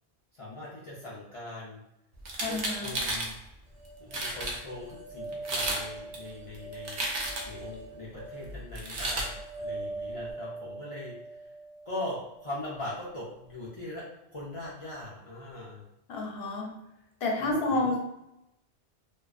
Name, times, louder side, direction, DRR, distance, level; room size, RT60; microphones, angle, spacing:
voice 1, 0.3-1.8 2.5-3.4 4.0-7.0 7.4-11.5 11.9-14.0 14.3-15.8 17.4-17.9, left 1 dB, 55° left, -7 dB, 0.4 m, -41 dB
sound 1, 2.2-3.3 3.8-4.6 5.3-5.8 6.1-7.6 8.7-9.3, right 2 dB, 55° right, 0.5 m, -32 dB
voice 2, 2.4-2.9 16.1-16.8 17.2-18.0, left 2 dB, 70° left, 0 dB, 0.8 m, -29 dB
sound 2, 3.7-12.9, right 2 dB, 75° right, 0.9 m, -42 dB
2.3 x 2.3 x 2.3 m, 0.85 s
omnidirectional pair, 1.1 m